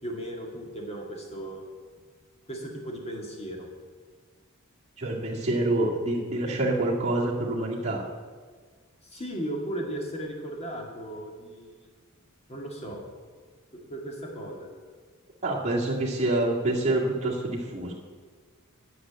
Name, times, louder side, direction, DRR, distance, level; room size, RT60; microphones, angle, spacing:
voice 1, 0.0-1.6 2.5-3.7 9.0-11.9 12.5-13.0 13.9-14.7, right 1 dB, 30° left, 0 dB, 2.1 m, -36 dB
voice 2, 5.0-8.0 15.4-17.9, right 2 dB, 30° right, -5 dB, 1.9 m, -27 dB
9.9 x 6.2 x 8.6 m, 1.5 s
head